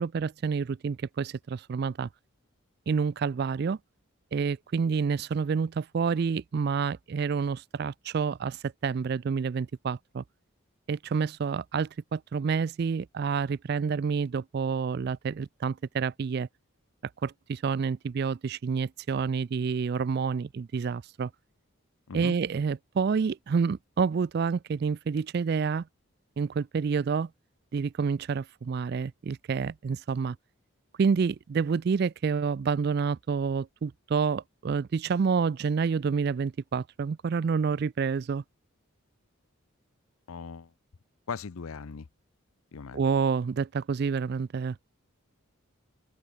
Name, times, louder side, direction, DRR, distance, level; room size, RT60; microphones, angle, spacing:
voice 1, 0.0-2.1 2.9-3.8 4.3-10.2 10.9-16.5 17.2-21.3 22.1-25.8 26.4-27.3 27.7-30.4 31.0-38.4 42.9-44.8, right 5 dB, 50° right, 0.3 m, -28 dB
voice 2, 40.3-40.7 41.3-42.1 42.7-43.0, left 5 dB, 80° left, 0.6 m, -38 dB
open air
head